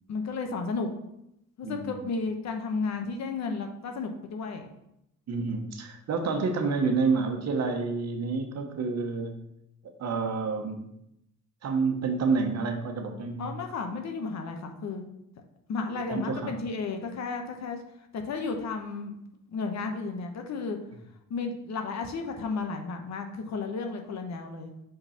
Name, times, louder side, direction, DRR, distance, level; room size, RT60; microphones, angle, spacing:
voice 1, 0.1-0.9 1.6-4.7 13.4-15.0 15.7-17.8 18.1-19.1 19.5-20.8 21.3-24.7, left 4 dB, 65° left, 4 dB, 1.0 m, -33 dB
voice 2, 1.6-2.1 5.3-9.3 9.8-10.9 11.6-13.5 16.1-16.5, right 4 dB, 60° right, 4 dB, 1.2 m, -29 dB
5.5 x 3.9 x 5.6 m, 0.81 s
cardioid pair, 90°, 30 cm